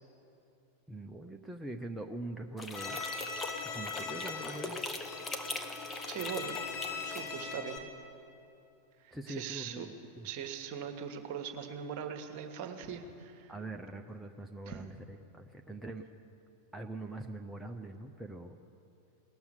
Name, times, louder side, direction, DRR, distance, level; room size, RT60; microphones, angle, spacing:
voice 1, 0.9-3.0 3.6-4.8 9.1-10.3 13.5-16.0 16.7-18.6, right 2 dB, 5° right, 2 dB, 0.6 m, -43 dB
sound 1, 2.6-7.5, left 3 dB, 15° left, 0.9 m, -41 dB
Bowed string instrument, 2.8-7.8, left 4 dB, 40° left, 1.5 m, -40 dB
voice 2, 6.1-6.5 7.0-7.9 9.0-9.9 10.2-13.5 14.7-14.8, right 8 dB, 45° right, 6 dB, 1.3 m, -41 dB
18.5 x 7.2 x 9.6 m, 2.7 s
figure-of-eight pair, 90°, 0 cm